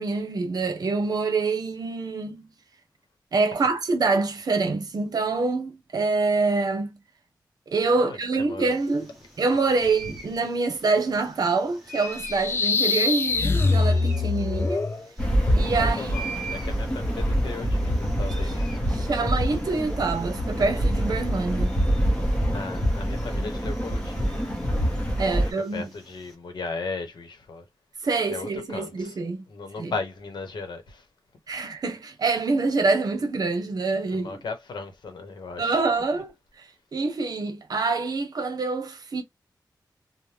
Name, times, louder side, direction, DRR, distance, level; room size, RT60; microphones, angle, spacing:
voice 1, 0.0-2.5 3.3-6.9 7.7-9.1 9.4-14.9 15.5-16.1 18.9-21.8 25.2-25.8 28.0-29.4 29.8-29.9 31.5-34.4 35.6-36.3 36.6-39.2, right 3 dB, 60° right, 0.8 m, -26 dB
voice 2, 8.0-8.8 15.8-19.4 22.5-24.4 25.4-27.6 28.3-29.2 29.5-31.1 34.1-35.8, left 4 dB, 75° left, 0.9 m, -37 dB
sound 1, 8.7-26.3, right 2 dB, ahead, 1.3 m, -45 dB
sound 2, 12.2-15.0, left 3 dB, 30° left, 0.3 m, -23 dB
sound 3, 15.2-25.5, equal, 15° left, 0.9 m, -25 dB
3.3 x 2.1 x 2.7 m
wide cardioid pair, 155°, 8 cm